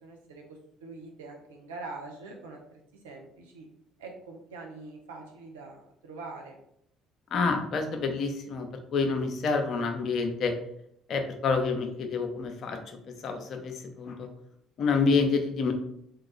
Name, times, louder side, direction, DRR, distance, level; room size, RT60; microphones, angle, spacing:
voice 1, 0.0-3.6 4.0-6.6, right 3 dB, 75° right, 1 dB, 0.8 m, -44 dB
voice 2, 7.3-10.5 11.1-12.8 13.2-14.3 14.8-15.7, left 4 dB, 50° left, 5 dB, 0.7 m, -28 dB
3.7 x 2.9 x 3.9 m, 0.74 s
figure-of-eight pair, 55°, 0 cm